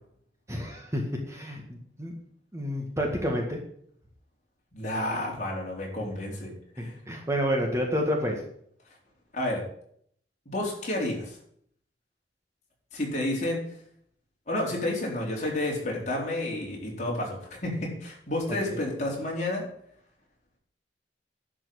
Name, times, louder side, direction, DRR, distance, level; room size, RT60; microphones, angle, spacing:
voice 1, 0.5-2.1 2.5-3.6 6.8-8.4 18.5-18.8, equal, 15° right, 1 dB, 1.9 m, -29 dB
voice 2, 4.7-6.5 6.8-6.9 9.3-9.6 10.5-11.4 12.9-13.6 14.5-17.4 17.6-19.6, left 1 dB, 45° left, -2 dB, 4.2 m, -30 dB
11.0 x 5.9 x 8.6 m, 0.66 s
head